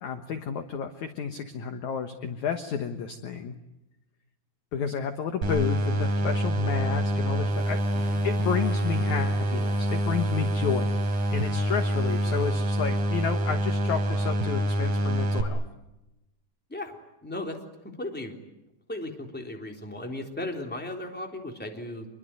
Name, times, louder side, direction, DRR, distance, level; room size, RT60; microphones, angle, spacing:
voice 1, 0.0-3.5 4.7-10.9 11.3-15.6, left 7 dB, 65° left, 7 dB, 2.1 m, -31 dB
sound 1, 5.4-15.4, right 1 dB, 50° right, 4.1 m, -26 dB
Harmonica, 7.4-14.4, left 2 dB, 80° left, 9.7 m, -50 dB
voice 2, 17.2-17.6 17.8-18.3 18.9-22.1, left 1 dB, 5° left, 2 dB, 2.9 m, -36 dB
27.0 x 22.0 x 9.1 m, 0.95 s
omnidirectional pair, 5.0 m